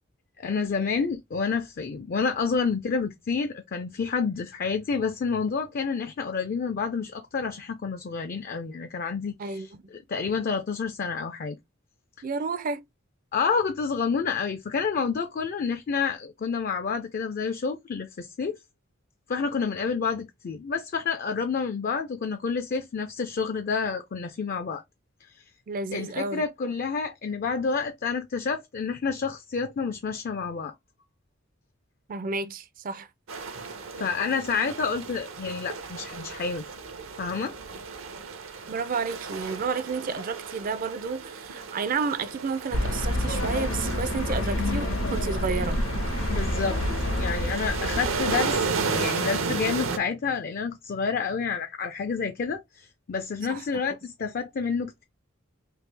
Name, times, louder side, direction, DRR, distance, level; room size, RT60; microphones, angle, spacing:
voice 1, 0.4-9.6 10.1-11.6 13.3-18.6 19.3-24.8 25.9-30.7 34.0-36.6 37.2-37.5 46.3-46.8 47.2-55.0, left 5 dB, 45° left, 0.4 m, -29 dB
voice 2, 9.4-9.8 12.2-12.9 25.7-26.4 32.1-33.1 38.7-45.8 53.5-53.6, right 4 dB, 45° right, 0.4 m, -31 dB
sound 1, 33.3-50.0, right 4 dB, 75° right, 0.7 m, -34 dB
sound 2, 42.7-48.9, left 1 dB, 85° left, 1.2 m, -28 dB
3.4 x 2.7 x 3.2 m
head